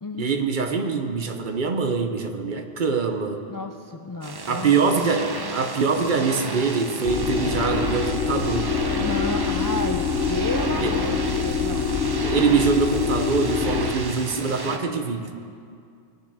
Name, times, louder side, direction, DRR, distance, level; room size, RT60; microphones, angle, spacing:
voice 1, 0.2-3.4 4.5-8.7 10.8-10.9 12.2-15.3, right 5 dB, 55° right, 6 dB, 0.9 m, -24 dB
voice 2, 3.5-5.1 9.0-11.9 15.5-15.6, left 2 dB, 35° left, 4 dB, 0.3 m, -32 dB
sound 1, 4.2-14.8, right 3 dB, 30° right, 0.6 m, -33 dB
sound 2, 7.0-13.9, left 6 dB, 90° left, 1.0 m, -25 dB
18.0 x 7.2 x 4.9 m, 2.3 s
omnidirectional pair, 1.0 m